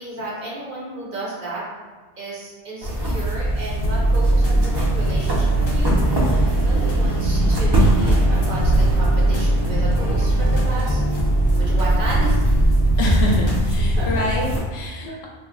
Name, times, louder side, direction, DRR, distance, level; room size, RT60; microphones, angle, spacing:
voice 1, 0.0-1.6 2.2-11.0 11.6-12.4 14.0-14.3 15.0-15.2, right 2 dB, 55° right, -5 dB, 0.8 m, -33 dB
sound 1, 2.8-14.6, equal, 35° right, 0.4 m, -23 dB
sound 2, 3.8-13.6, right 1 dB, 45° left, 0.3 m, -20 dB
voice 2, 13.0-15.3, left 1 dB, 70° left, -1 dB, 0.8 m, -24 dB
2.9 x 2.1 x 3.5 m, 1.4 s
omnidirectional pair, 1.2 m